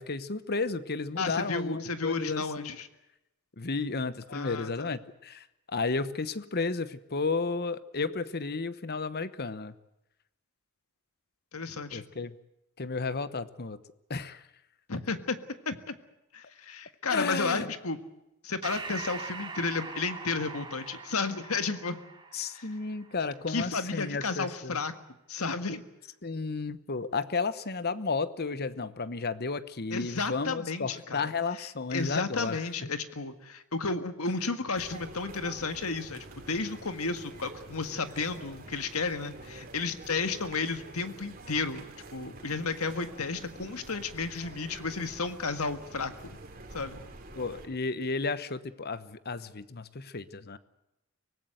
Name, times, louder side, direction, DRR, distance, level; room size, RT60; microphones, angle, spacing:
voice 1, 0.0-2.7 3.6-9.7 11.9-12.3 12.8-13.8 14.1-14.4 17.1-17.7 22.3-24.8 26.2-32.9 47.3-50.6, left 4 dB, 45° left, 14 dB, 1.0 m, -33 dB
voice 2, 1.2-2.9 4.3-4.9 11.5-12.0 14.9-15.4 15.7-15.9 16.3-18.0 18.4-22.0 22.5-22.7 23.5-24.9 25.3-25.8 29.9-31.3 31.6-41.9 42.1-46.1 46.7-47.0, left 4 dB, 75° left, 9 dB, 1.7 m, -33 dB
Breathing, 18.6-23.5, right 4 dB, 20° right, 2.4 m, -42 dB
sound 1, 34.7-47.7, right 2 dB, 40° right, 3.0 m, -47 dB
24.5 x 18.5 x 8.0 m, 0.90 s
head